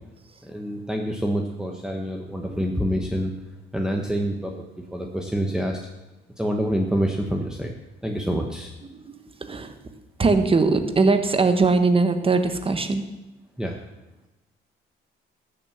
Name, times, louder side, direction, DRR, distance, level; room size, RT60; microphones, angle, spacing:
voice 1, 0.5-3.3 3.7-5.8 6.4-7.7 8.0-8.7 13.6-13.8, equal, 5° right, 2 dB, 1.3 m, -27 dB
voice 2, 8.8-9.8 10.2-13.0, right 3 dB, 25° right, 8 dB, 1.5 m, -21 dB
13.5 x 7.6 x 7.4 m, 1.0 s
cardioid pair, 90°, 20 cm